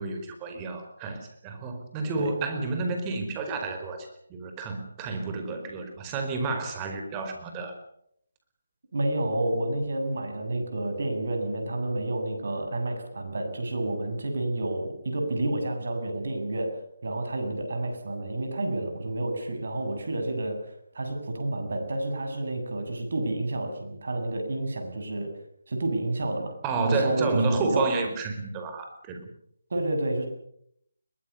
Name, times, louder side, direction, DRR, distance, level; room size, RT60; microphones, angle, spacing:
voice 1, 0.0-7.8 26.6-29.2, right 3 dB, 20° right, 5 dB, 4.7 m, -30 dB
voice 2, 8.9-20.6 20.9-25.3 25.7-26.6 26.8-27.9 29.7-30.3, right 1 dB, 60° right, 5 dB, 7.3 m, -30 dB
22.5 x 20.0 x 7.0 m, 0.71 s
figure-of-eight pair, 155°, 0 cm